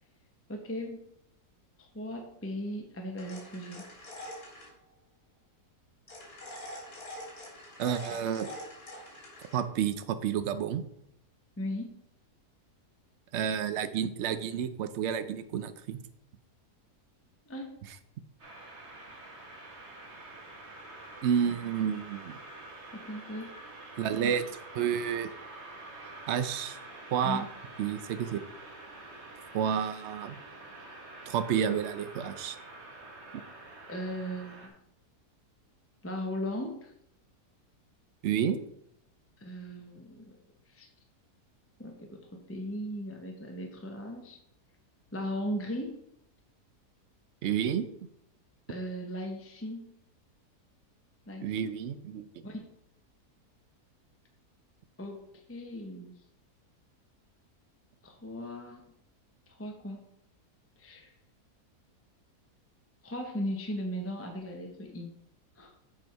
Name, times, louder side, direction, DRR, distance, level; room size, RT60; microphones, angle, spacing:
voice 1, 0.5-1.0 1.8-3.9 11.6-12.0 17.5-17.7 22.9-23.6 27.2-27.5 33.9-34.7 36.0-36.9 39.4-40.3 40.7-40.9 41.8-44.4 45.1-46.0 48.7-50.0 51.3-51.7 52.4-52.6 55.0-56.1 58.0-58.8 59.6-60.0 60.8-61.1 63.0-65.1 65.6-65.7, equal, 15° left, 2 dB, 0.6 m, -37 dB
sound 1, 3.2-4.7 6.1-9.6, left 1 dB, 65° left, 3.0 m, -45 dB
voice 2, 7.8-8.5 9.5-10.8 13.3-16.0 21.2-22.4 24.0-25.3 26.3-26.8 27.1-27.4 27.8-28.4 29.5-30.4 31.3-32.6 38.2-38.6 47.4-47.9 51.4-52.3, right 8 dB, 65° right, 11 dB, 0.7 m, -30 dB
sound 2, 18.4-34.7, right 2 dB, 45° right, 1.6 m, -47 dB
7.7 x 5.0 x 4.6 m, 0.76 s
omnidirectional pair, 1.7 m